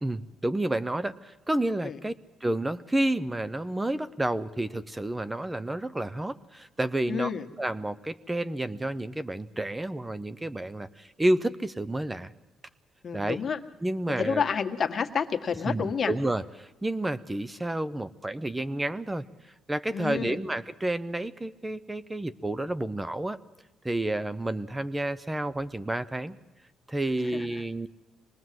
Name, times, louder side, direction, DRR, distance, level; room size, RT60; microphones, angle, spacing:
voice 1, 0.0-2.1 2.4-7.3 7.6-12.3 13.1-13.4 13.8-14.4 15.7-23.4 23.8-26.4 26.9-27.9, right 1 dB, 15° right, 15 dB, 0.8 m, -30 dB
voice 2, 7.1-7.5 13.0-13.6 14.1-16.1 19.9-20.4 27.3-27.5, left 6 dB, 45° left, 6 dB, 1.8 m, -29 dB
25.0 x 20.5 x 7.8 m, 1.1 s
cardioid pair, 90°, 0 cm